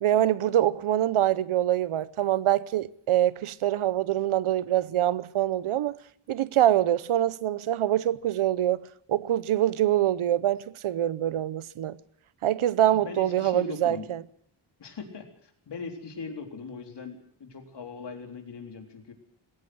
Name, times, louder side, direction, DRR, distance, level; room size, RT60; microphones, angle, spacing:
voice 1, 0.0-6.0 6.3-12.0 12.4-14.2, right 12 dB, 80° right, 0.9 m, -25 dB
voice 2, 12.9-14.1 14.8-19.1, left 4 dB, 55° left, 3.9 m, -40 dB
20.5 x 17.5 x 7.9 m
wide cardioid pair, 160°, 49 cm